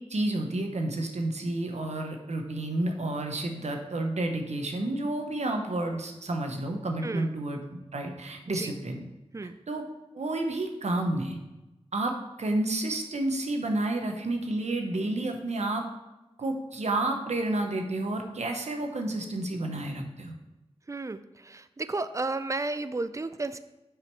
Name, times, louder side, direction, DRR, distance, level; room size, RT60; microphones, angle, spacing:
voice 1, 0.1-7.6 7.9-9.0 9.7-9.8 10.1-11.4 11.9-12.1 12.4-15.9 16.4-20.3, right 2 dB, 85° right, 4 dB, 0.9 m, -30 dB
voice 2, 7.0-7.3 8.5-8.8 9.3-9.6 20.9-23.6, right 3 dB, 30° right, 13 dB, 0.4 m, -33 dB
6.0 x 4.9 x 4.6 m, 1.0 s
wide cardioid pair, 55°, 11 cm